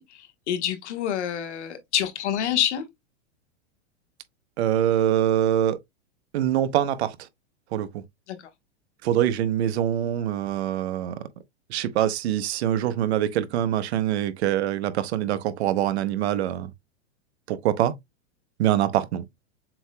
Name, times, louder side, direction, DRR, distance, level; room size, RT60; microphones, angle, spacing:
voice 1, 0.0-2.9 8.3-8.5, left 10 dB, 75° left, 1.3 m, -27 dB
voice 2, 4.6-5.8 6.3-7.2 7.7-7.9 9.0-11.2 11.7-16.7 17.5-17.9 18.6-19.2, right 11 dB, 65° right, 0.8 m, -24 dB
7.1 x 2.8 x 2.2 m
supercardioid pair, 140°, 35 cm